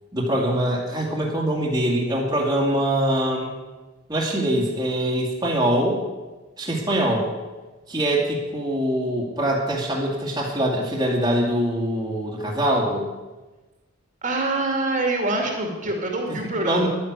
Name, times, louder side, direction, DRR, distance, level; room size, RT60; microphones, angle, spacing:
voice 1, 0.1-3.5 4.1-6.0 6.6-7.3 7.9-13.0 16.6-16.9, right 1 dB, 20° right, -3 dB, 2.3 m, -23 dB
voice 2, 14.2-16.9, right 2 dB, 40° right, 2 dB, 2.4 m, -25 dB
11.5 x 10.0 x 8.2 m, 1.2 s
head